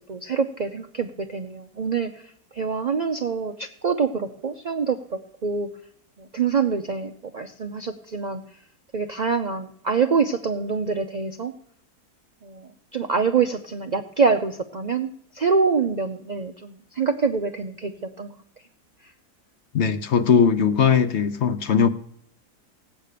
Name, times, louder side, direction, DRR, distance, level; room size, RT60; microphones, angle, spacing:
voice 1, 0.1-5.7 6.2-8.4 8.9-11.5 12.4-18.3, right 5 dB, 75° right, 6 dB, 0.4 m, -25 dB
voice 2, 19.7-21.9, left 7 dB, 55° left, 12 dB, 0.9 m, -19 dB
17.5 x 8.4 x 6.7 m, 0.66 s
omnidirectional pair, 1.7 m